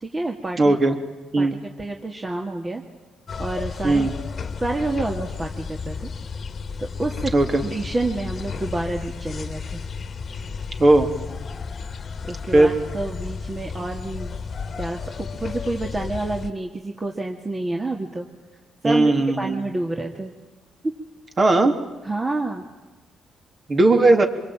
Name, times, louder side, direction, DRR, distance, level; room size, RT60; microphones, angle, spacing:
voice 1, 0.0-0.8 1.4-2.8 3.4-4.1 4.6-6.1 6.8-7.3 7.6-9.8 12.3-14.3 14.8-18.3 18.8-20.4 22.0-22.7, right 2 dB, 25° right, 2 dB, 2.2 m, -28 dB
voice 2, 0.6-0.9 1.3-1.6 3.8-4.1 7.3-7.6 10.8-11.1 12.5-12.7 18.8-19.6 21.4-21.7 23.7-24.3, right 2 dB, 40° right, 5 dB, 3.3 m, -17 dB
sound 1, 3.3-16.5, left 5 dB, 45° left, 1.6 m, -33 dB
26.0 x 22.5 x 8.9 m, 1.2 s
cardioid pair, 90°, 0 cm